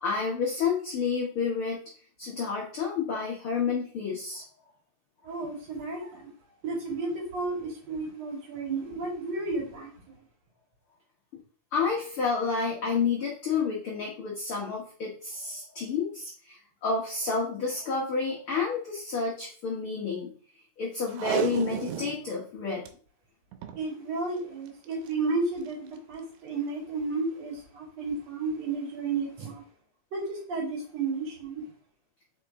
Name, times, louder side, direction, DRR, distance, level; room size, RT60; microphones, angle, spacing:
voice 1, 0.0-1.8 2.2-4.4 11.7-20.3 20.8-22.9, left 5 dB, 70° left, 1.3 m, -30 dB
voice 2, 5.2-6.3 6.6-10.2 23.7-29.6 30.1-31.6, right 3 dB, 50° right, 3.0 m, -32 dB
Packing tape duct tape, 21.1-22.2 22.6-22.7 22.9-23.0 23.5-23.8 24.8-25.1 25.7-25.8, right 10 dB, 90° right, 2.7 m, -31 dB
5.2 x 5.1 x 3.5 m
omnidirectional pair, 4.3 m